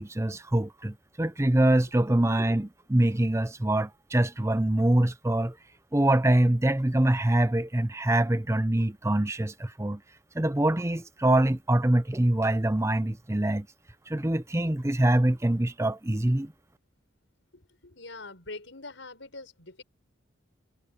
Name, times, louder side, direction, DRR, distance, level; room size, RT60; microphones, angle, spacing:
voice 1, 0.0-5.6 5.9-10.0 10.3-13.7 14.1-16.5, right 1 dB, 15° right, 0.6 m, -24 dB
voice 2, 17.5-19.8, left 3 dB, 70° left, 5.8 m, -44 dB
head